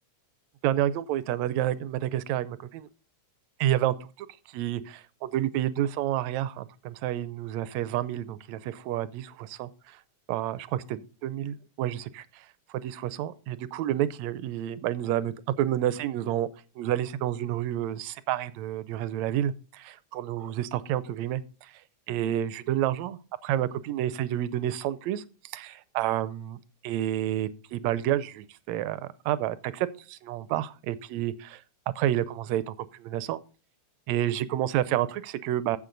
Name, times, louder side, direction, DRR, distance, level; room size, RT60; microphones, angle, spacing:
voice 1, 0.6-2.9 3.6-10.0 10.3-16.5 16.8-21.8 22.1-31.6 32.0-33.4 34.1-35.8, right 12 dB, 75° right, 1.9 m, -30 dB
14.5 x 6.5 x 3.9 m
omnidirectional pair, 3.3 m